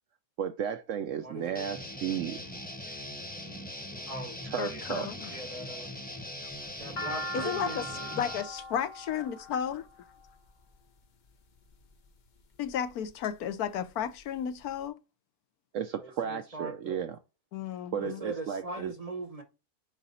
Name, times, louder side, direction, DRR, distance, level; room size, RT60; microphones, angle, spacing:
voice 1, 0.4-2.4 4.4-5.1 15.7-17.2 17.9-18.9, right 8 dB, 70° right, 0.8 m, -34 dB
voice 2, 1.2-1.7 4.1-4.4 4.7-4.8 5.3-5.9 6.8-8.1 16.0-17.0 18.0-19.4, right 2 dB, 30° right, 0.7 m, -40 dB
Guitar, 1.5-8.4, left 1 dB, 5° left, 0.9 m, -41 dB
voice 3, 4.6-5.3 7.3-9.9 12.6-15.0 17.5-18.2, left 9 dB, 75° left, 1.2 m, -33 dB
sound 1, 6.5-10.7 11.6-12.0 12.6-13.3 13.6-13.7 13.9-14.7, left 1 dB, 50° left, 0.5 m, -40 dB
6.9 x 4.9 x 4.2 m
omnidirectional pair, 1.7 m